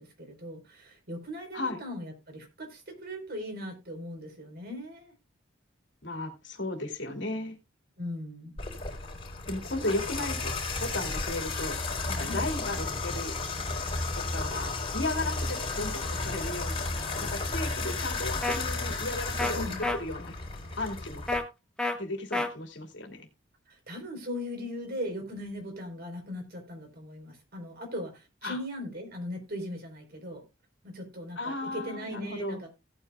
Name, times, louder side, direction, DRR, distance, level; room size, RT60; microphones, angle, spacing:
voice 1, 0.0-5.1 8.0-8.5 12.2-12.5 19.5-19.9 23.7-30.4 30.8-32.7, left 1 dB, 50° right, 4.3 m, -39 dB
voice 2, 6.0-7.6 9.5-10.5 10.8-11.8 12.1-13.4 14.1-19.7 20.0-20.4 20.8-21.2 22.0-23.3 28.4-28.6 31.4-32.6, left 2 dB, 60° left, 2.7 m, -35 dB
Water tap faucet / Bathtub (filling or washing), 8.6-21.4, left 3 dB, 30° left, 4.1 m, -33 dB
sound 1, 18.4-18.6 19.4-19.5 19.8-20.0 21.3-21.4 21.8-22.0 22.3-22.5, left 2 dB, 5° left, 1.5 m, -28 dB
17.0 x 8.9 x 2.4 m
head